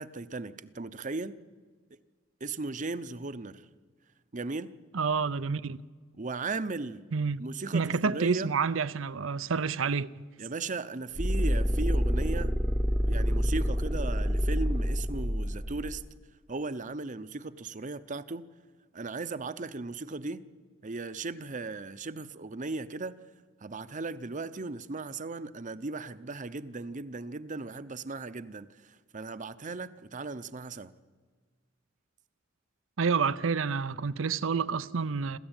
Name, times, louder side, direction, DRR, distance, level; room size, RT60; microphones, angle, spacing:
voice 1, 0.0-1.3 2.4-3.7 4.3-4.7 6.2-7.0 7.4-8.5 10.4-12.5 13.1-16.0 16.5-18.5 18.9-20.4 20.8-23.1 23.6-30.9, right 3 dB, 40° right, 0.8 m, -37 dB
voice 2, 4.9-5.8 7.1-7.4 7.7-10.1 33.0-35.4, right 5 dB, 75° right, 0.6 m, -29 dB
sound 1, 11.2-16.0, equal, 5° left, 0.9 m, -27 dB
27.5 x 14.0 x 9.0 m
head